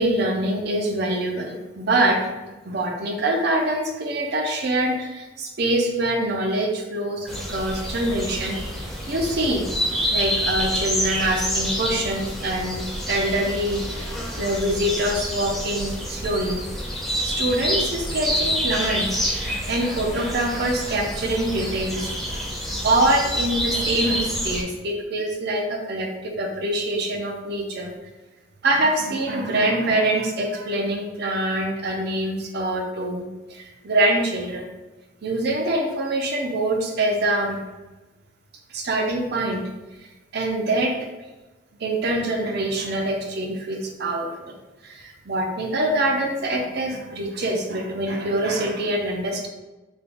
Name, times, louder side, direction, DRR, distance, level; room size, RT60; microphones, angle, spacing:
voice 1, 0.0-9.6 10.1-14.0 14.3-16.6 17.2-27.9 28.6-34.7 35.2-37.6 38.7-39.6 40.3-41.1 41.8-44.6 44.8-49.5, right 1 dB, 55° right, 1 dB, 0.6 m, -25 dB
sound 1, 7.3-24.6, equal, ahead, 0.7 m, -28 dB
3.5 x 2.2 x 3.7 m, 1.1 s
head